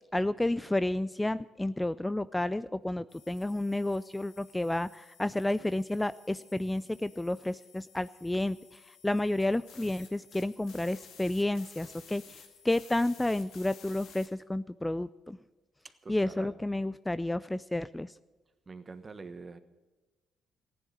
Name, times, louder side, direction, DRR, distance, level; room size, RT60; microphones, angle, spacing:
voice 1, 0.1-15.4 16.1-18.1, left 1 dB, 10° left, 16 dB, 0.4 m, -31 dB
sound 1, 3.1-14.3, left 7 dB, 70° left, 1.9 m, -55 dB
voice 2, 16.0-16.6 18.7-19.6, right 4 dB, 35° right, 11 dB, 1.3 m, -45 dB
15.0 x 10.5 x 7.9 m, 1.2 s
hypercardioid pair, 50°, 0 cm